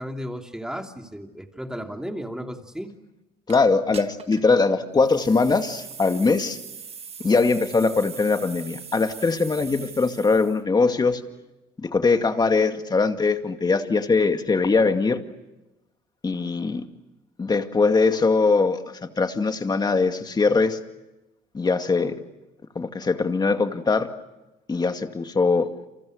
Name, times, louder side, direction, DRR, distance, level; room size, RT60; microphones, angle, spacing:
voice 1, 0.0-2.9, equal, 5° right, 3 dB, 3.0 m, -34 dB
voice 2, 3.5-6.6 7.2-11.2 11.8-15.2 16.2-16.8 17.4-18.8 19.2-20.8 21.5-22.2 22.8-24.1 24.7-25.7, left 4 dB, 25° left, 7 dB, 2.2 m, -21 dB
sound 1, 3.5-3.6 3.9-4.5 5.0-10.6, right 6 dB, 35° right, 1.5 m, -41 dB
29.5 x 27.5 x 6.5 m, 1.0 s
cardioid pair, 110°, 17 cm